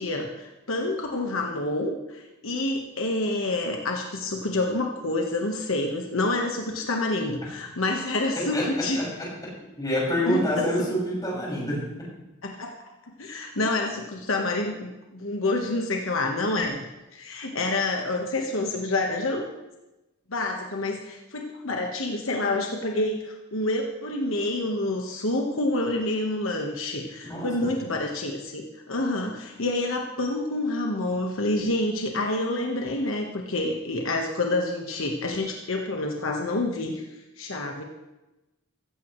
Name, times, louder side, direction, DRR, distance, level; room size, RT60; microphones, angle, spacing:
voice 1, 0.0-9.0 10.3-10.9 12.4-12.7 13.0-16.8 17.1-19.4 20.3-37.0 37.4-37.8, left 2 dB, 70° left, 2 dB, 1.3 m, -28 dB
voice 2, 8.4-9.1 9.8-11.8 27.2-27.7, equal, 20° left, -6 dB, 6.0 m, -27 dB
15.5 x 15.0 x 3.2 m, 1.0 s
head